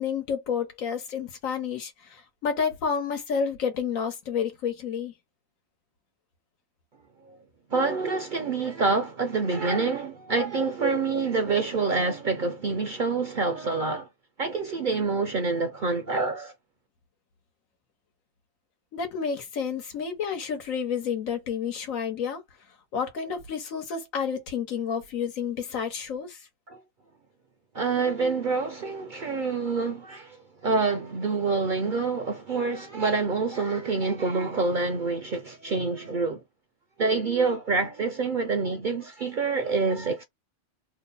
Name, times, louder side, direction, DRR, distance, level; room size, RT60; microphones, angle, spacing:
voice 1, 0.0-5.1 18.9-22.4 22.9-26.4, left 6 dB, 90° left, 1.4 m, -30 dB
voice 2, 7.7-14.1 14.4-16.5 26.7-26.8 27.7-36.4 37.0-40.2, right 4 dB, 60° right, 0.5 m, -27 dB
3.0 x 2.1 x 3.8 m
omnidirectional pair, 1.4 m